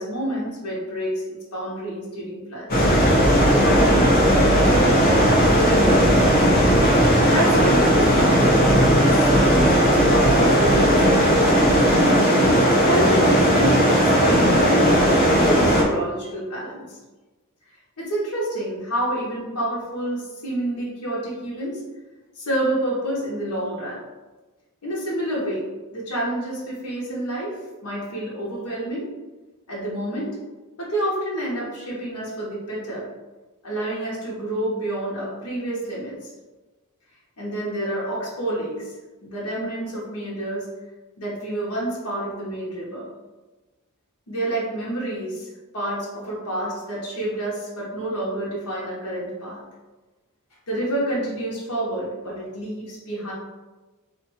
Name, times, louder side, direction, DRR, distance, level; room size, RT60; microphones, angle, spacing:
voice 1, 0.0-2.8 3.5-6.4 7.3-11.9 12.4-17.0 18.0-21.8 22.4-24.0 24.8-27.6 27.8-29.1 29.7-30.4 30.8-33.1 33.6-36.3 37.4-38.9 39.2-40.7 41.2-43.1 44.3-45.5 45.7-49.6 50.7-53.3, right 1 dB, 90° left, -6 dB, 1.1 m, -28 dB
sound 1, 2.7-15.8, equal, 40° left, 0.7 m, -17 dB
2.6 x 2.5 x 4.0 m, 1.2 s
head